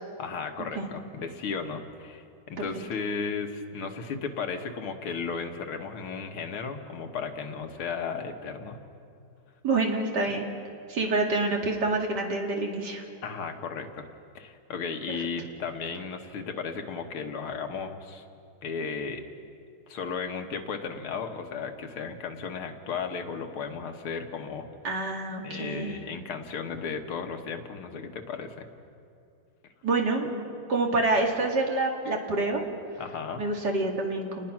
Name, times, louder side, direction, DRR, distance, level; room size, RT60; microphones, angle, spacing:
voice 1, 0.2-8.8 10.3-10.4 13.2-14.1 14.3-18.2 18.6-19.2 19.9-24.7 25.4-28.7 33.0-33.5, left 5 dB, 90° left, 5 dB, 2.3 m, -35 dB
voice 2, 9.6-10.4 10.9-13.0 24.8-26.0 29.8-30.4 30.7-32.6 33.4-34.5, right 2 dB, 50° right, 1 dB, 2.8 m, -27 dB
29.5 x 19.5 x 6.0 m, 2.5 s
omnidirectional pair, 2.3 m